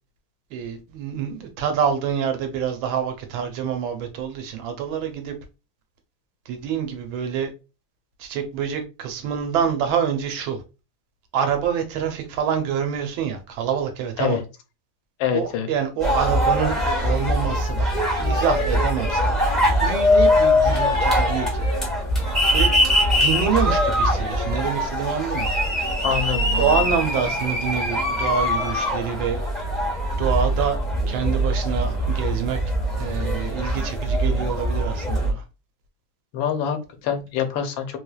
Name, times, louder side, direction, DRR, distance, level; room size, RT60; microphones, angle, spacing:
voice 1, 0.5-5.3 6.5-7.5 8.2-10.6 11.3-14.4 15.3-17.9 18.2-19.4 19.8-21.7 22.5-22.7 23.2-25.5 26.6-29.4 30.2-30.8 31.1-32.6 33.0-35.4, right 7 dB, 90° right, 1.5 m, -26 dB
voice 2, 15.2-15.7 26.0-26.8 36.3-38.0, left 8 dB, 85° left, 1.4 m, -25 dB
sound 1, 16.0-35.3, equal, ahead, 0.4 m, -22 dB
3.3 x 3.2 x 2.3 m
omnidirectional pair, 2.1 m